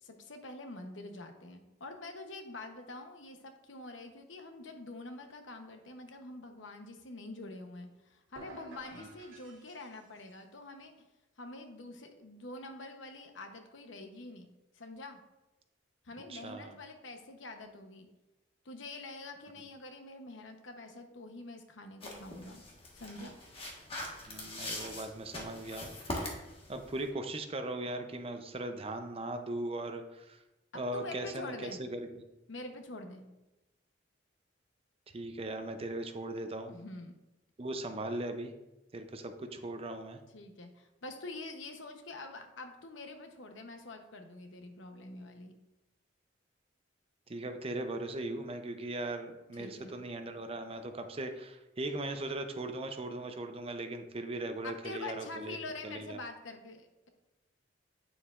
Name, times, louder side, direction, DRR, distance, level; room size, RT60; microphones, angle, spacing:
voice 1, 0.0-10.9 11.4-14.5 14.7-15.2 16.0-18.1 18.6-22.6 22.9-23.3 30.7-31.8 32.5-33.2 36.7-37.1 40.3-45.5 49.5-49.9 54.6-57.1, left 2 dB, 80° left, 6 dB, 0.9 m, -46 dB
sound 1, 8.3-10.4, right 2 dB, 90° right, 1.9 m, -53 dB
voice 2, 16.3-16.8 24.3-25.9 26.7-30.4 30.7-32.0 35.1-36.7 37.6-38.5 38.9-40.2 47.3-55.6 55.8-56.2, right 2 dB, 30° right, 7 dB, 0.6 m, -39 dB
sound 2, 22.0-27.1, left 1 dB, 30° left, 1.4 m, -42 dB
8.9 x 7.0 x 2.5 m, 0.99 s
head